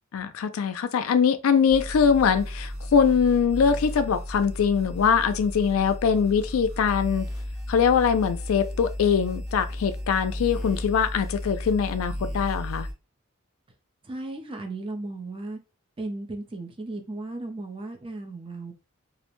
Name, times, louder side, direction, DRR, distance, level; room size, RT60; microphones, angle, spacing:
voice 1, 0.1-7.3 7.7-12.9, left 6 dB, 75° left, 0.4 m, -22 dB
sound 1, 1.7-12.9, left 1 dB, 60° right, 1.0 m, -34 dB
voice 2, 14.0-15.6 16.0-18.7, right 2 dB, 25° right, 0.5 m, -35 dB
2.4 x 2.1 x 2.9 m
head